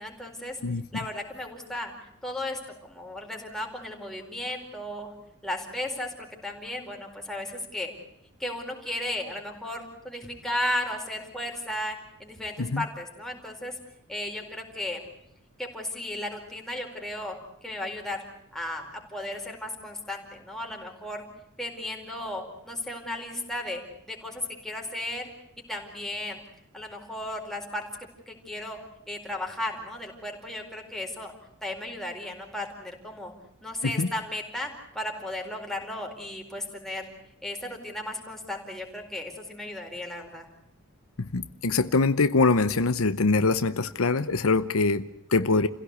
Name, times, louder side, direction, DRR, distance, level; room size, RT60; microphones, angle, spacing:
voice 1, 0.0-0.6 0.9-1.9 2.2-5.1 5.4-6.1 6.4-7.9 8.4-13.8 14.1-15.0 15.6-17.4 17.6-18.2 18.5-21.2 21.6-25.3 25.7-26.4 26.7-27.8 28.3-28.8 29.1-31.3 31.6-33.3 33.6-37.1 37.4-40.5, left 1 dB, ahead, 0 dB, 4.5 m, -35 dB
voice 2, 41.2-45.7, left 3 dB, 75° left, 12 dB, 0.8 m, -24 dB
29.0 x 16.5 x 8.3 m, 0.80 s
head